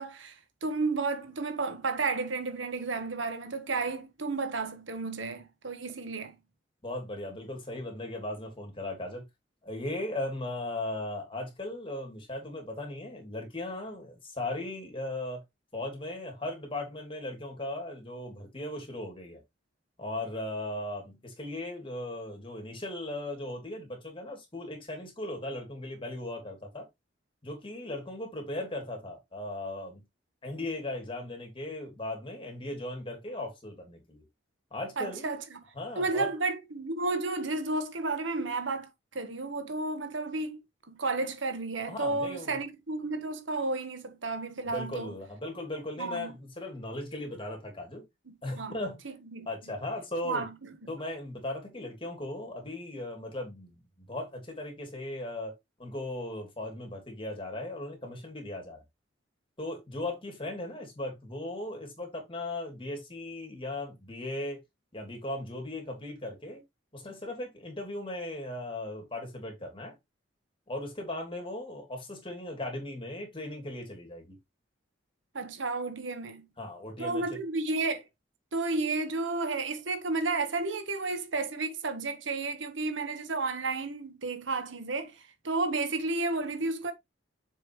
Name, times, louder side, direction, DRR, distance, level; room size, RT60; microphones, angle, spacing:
voice 1, 0.0-6.4 35.0-35.6 35.9-40.6 40.9-45.1 46.0-46.3 48.5-48.8 49.3-49.5 50.2-50.7 75.3-76.5 77.0-78.0 78.5-86.9, right 3 dB, 85° right, 1.4 m, -32 dB
voice 2, 6.8-9.2 9.6-15.4 15.7-19.4 20.0-26.9 27.4-30.0 30.4-34.2 34.7-35.3 35.7-36.3 41.9-42.6 44.7-48.0 48.4-49.0 49.5-50.4 50.9-58.8 59.6-64.6 64.9-66.6 66.9-70.0 70.7-74.4 76.6-77.4, left 1 dB, 30° left, 2.9 m, -37 dB
6.9 x 5.4 x 3.1 m
head